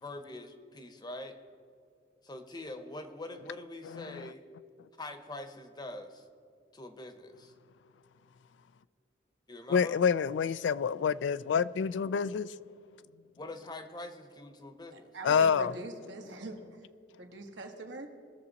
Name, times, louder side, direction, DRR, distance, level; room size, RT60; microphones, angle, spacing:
voice 1, 0.0-1.4 2.2-4.4 5.0-6.3 6.7-7.5 9.5-10.0 13.4-15.1, left 2 dB, 25° left, 0.8 m, -44 dB
voice 2, 3.9-4.3 9.7-12.5 15.2-15.7, left 6 dB, 75° left, 0.3 m, -28 dB
voice 3, 14.9-16.8 17.2-18.1, right 2 dB, 75° right, 1.3 m, -43 dB
20.5 x 6.9 x 4.1 m
head